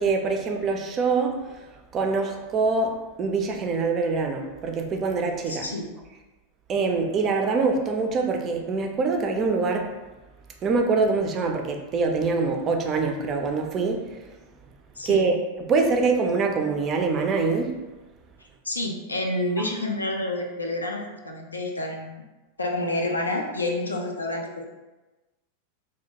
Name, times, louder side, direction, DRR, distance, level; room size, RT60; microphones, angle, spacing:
voice 1, 0.0-5.7 6.7-9.9 10.6-14.4 15.1-17.8, right 4 dB, 30° right, 3 dB, 0.3 m, -24 dB
voice 2, 5.5-5.9 15.0-15.2 18.6-22.1 22.6-24.7, left 1 dB, 80° left, 1 dB, 0.3 m, -29 dB
2.2 x 2.1 x 2.7 m, 1.1 s
figure-of-eight pair, 90°, 0 cm